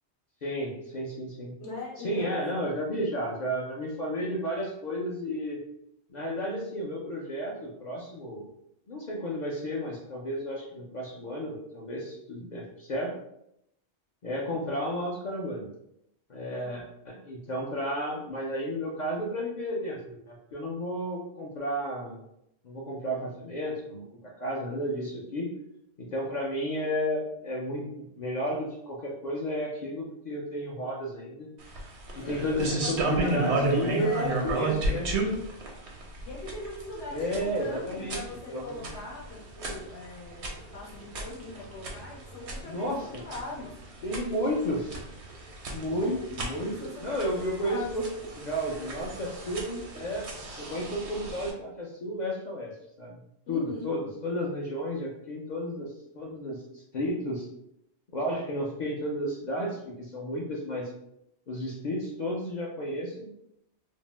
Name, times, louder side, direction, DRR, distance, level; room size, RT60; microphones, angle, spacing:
voice 1, 0.4-1.5 2.0-5.6 6.1-8.4 8.9-13.2 14.2-15.7 16.3-22.2 22.6-25.5 26.0-31.5 32.1-35.1 37.1-38.2 38.5-38.9 42.6-43.2 44.0-45.0 45.7-48.1 48.4-50.3 50.6-52.7 53.0-53.2 53.5-57.5 58.1-60.9 61.5-63.3, equal, 55° left, -3 dB, 0.5 m, -32 dB
voice 2, 1.6-2.4 16.5-16.8 32.2-34.6 36.2-43.8 45.9-46.2 46.6-48.0 53.5-54.0, left 3 dB, 80° left, -3 dB, 0.9 m, -41 dB
sound 1, 31.6-51.5, right 2 dB, 85° right, 1.0 m, -34 dB
2.6 x 2.0 x 3.1 m, 0.78 s
omnidirectional pair, 1.1 m